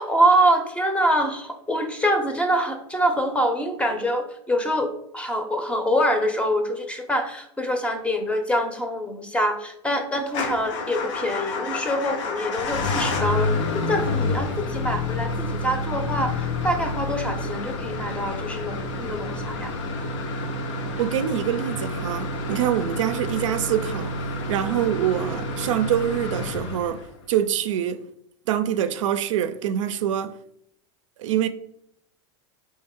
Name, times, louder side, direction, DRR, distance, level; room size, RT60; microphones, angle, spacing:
voice 1, 0.0-19.7 22.5-22.9 24.7-24.9, equal, 5° left, 0.6 m, -25 dB
Motor vehicle (road) / Engine starting / Idling, 10.3-27.2, left 2 dB, 75° left, 0.7 m, -29 dB
voice 2, 21.0-24.1 24.5-27.0 27.3-28.0 28.5-30.3 31.2-31.5, right 10 dB, 90° right, 0.4 m, -25 dB
4.3 x 3.2 x 3.6 m
supercardioid pair, 125°, 16 cm